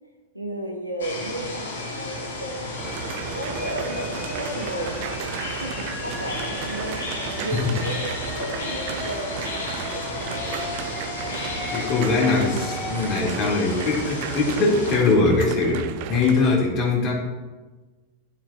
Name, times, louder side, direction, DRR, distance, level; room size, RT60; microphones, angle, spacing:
voice 1, 0.3-9.5 9.9-10.6 11.3-11.6, right 1 dB, 90° left, 2 dB, 1.8 m, -34 dB
sound 1, 1.0-15.0, left 2 dB, 65° left, 2.5 m, -33 dB
sound 2, 2.8-13.2, left 3 dB, 15° left, 1.2 m, -38 dB
sound 3, 2.8-16.5, right 11 dB, 45° right, 0.6 m, -35 dB
voice 2, 11.7-17.1, left 3 dB, 40° left, -3 dB, 3.4 m, -21 dB
15.5 x 11.5 x 2.9 m, 1.3 s
figure-of-eight pair, 90°, 0 cm